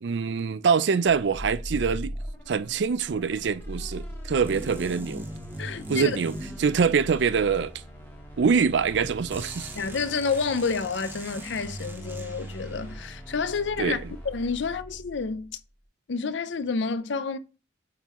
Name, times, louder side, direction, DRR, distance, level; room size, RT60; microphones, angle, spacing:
voice 1, 0.0-2.1 2.5-5.3 5.9-7.7 8.4-9.7 13.8-14.1, right 6 dB, 65° right, 0.4 m, -24 dB
sound 1, 1.0-15.6, equal, 10° left, 1.4 m, -41 dB
sound 2, 4.4-7.3 9.3-12.7, right 1 dB, 10° right, 0.8 m, -41 dB
voice 2, 5.6-6.2 9.8-14.0 14.2-15.6 16.1-17.4, left 5 dB, 70° left, 0.5 m, -29 dB
8.3 x 3.8 x 3.0 m
head